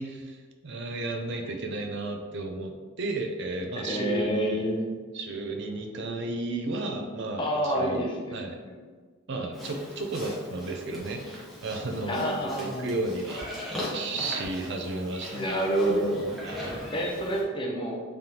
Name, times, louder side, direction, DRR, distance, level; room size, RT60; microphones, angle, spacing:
voice 1, 0.0-4.6 5.1-8.1 8.3-8.6 9.3-15.6 16.4-16.8, right 2 dB, 55° right, 4 dB, 0.5 m, -33 dB
voice 2, 3.7-4.9 7.4-8.4 8.6-8.8 12.1-13.0 15.3-16.2 16.9-18.0, equal, 25° left, -1 dB, 0.6 m, -28 dB
Livestock farm animals working animals, 9.5-17.4, left 1 dB, ahead, 0.9 m, -39 dB
3.8 x 3.4 x 2.9 m, 1.5 s
head